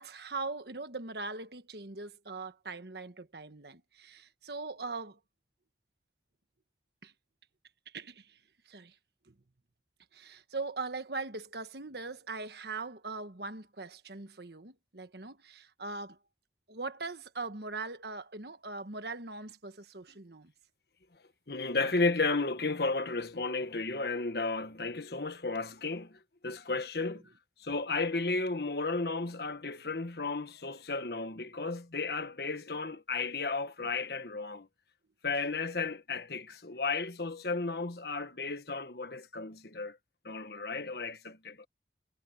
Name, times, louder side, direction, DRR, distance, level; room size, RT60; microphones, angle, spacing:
voice 1, 0.0-5.2 7.0-7.1 7.9-8.4 8.6-9.0 9.3-9.4 10.1-16.2 16.7-20.5, right 3 dB, 65° right, 1.4 m, -41 dB
voice 2, 21.5-27.2 27.6-34.7 35.2-40.0 40.2-41.6, left 3 dB, 60° left, 1.4 m, -33 dB
head